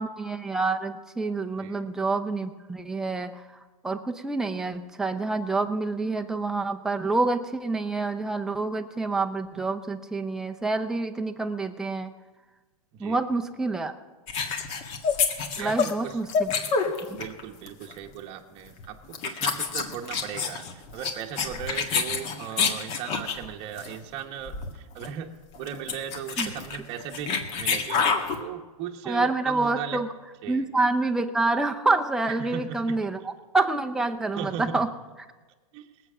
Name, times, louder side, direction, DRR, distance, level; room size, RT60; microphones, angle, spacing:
voice 1, 0.0-3.5 3.8-12.1 13.0-13.9 15.6-16.5 17.1-17.2 26.4-26.5 29.0-30.1 30.5-34.9, right 3 dB, 5° right, 4 dB, 0.7 m, -27 dB
sound 1, 14.3-17.4 17.7-17.9 18.7-18.8 19.1-23.4 23.8-23.9 24.2-24.3 24.5-24.7 25.0-25.1 25.5-28.4, left 5 dB, 35° left, 1.6 m, -27 dB
voice 2, 15.5-16.2 17.1-30.0 30.4-30.6 32.3-33.0 34.4-34.8 35.7-35.9, right 9 dB, 30° right, 2 dB, 1.0 m, -37 dB
19.0 x 7.9 x 6.2 m, 1.3 s
hypercardioid pair, 140°, 19 cm